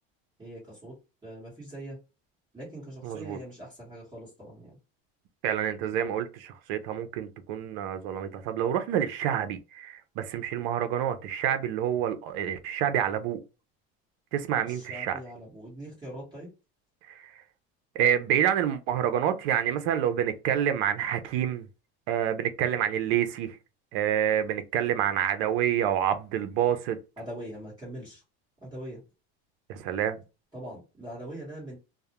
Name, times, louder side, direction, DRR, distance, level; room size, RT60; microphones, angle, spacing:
voice 1, 0.4-1.0 1.2-2.0 2.5-4.8 14.6-16.5 27.2-28.2 28.6-29.0 30.5-31.8, right 1 dB, 15° right, 1.1 m, -42 dB
voice 2, 3.0-3.4 5.4-13.4 14.3-15.2 17.1-17.3 18.0-21.6 22.1-23.6 23.9-27.0 29.7-30.2, right 10 dB, 75° right, 0.5 m, -28 dB
2.3 x 2.0 x 2.8 m
supercardioid pair, 130°, 31 cm